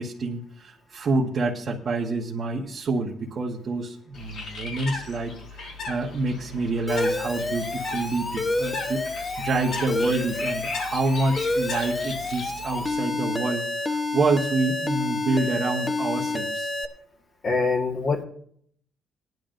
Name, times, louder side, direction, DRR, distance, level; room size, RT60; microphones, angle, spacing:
voice 1, 0.0-16.7, right 3 dB, 50° right, -3 dB, 1.3 m, -27 dB
Bird, 4.1-13.0, left 3 dB, 70° left, 4.6 m, -37 dB
Alarm, 6.9-16.9, left 2 dB, 25° left, 1.0 m, -29 dB
voice 2, 17.4-18.2, left 4 dB, 50° left, 1 dB, 1.6 m, -24 dB
19.0 x 10.5 x 2.6 m, 0.63 s
cardioid pair, 90°, 0 cm